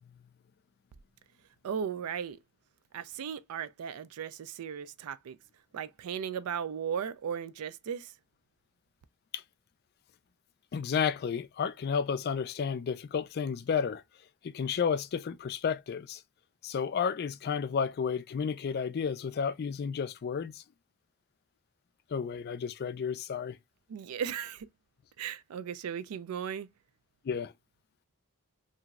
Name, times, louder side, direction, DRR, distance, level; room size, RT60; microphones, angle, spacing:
voice 1, 1.6-2.4 2.9-5.4 5.7-8.1 23.9-24.7 25.2-26.7, right 7 dB, 90° right, 0.4 m, -36 dB
voice 2, 10.7-14.0 14.4-16.2 16.6-20.6 22.1-23.6 27.2-27.5, left 6 dB, 45° left, 0.3 m, -32 dB
3.0 x 2.6 x 2.3 m
head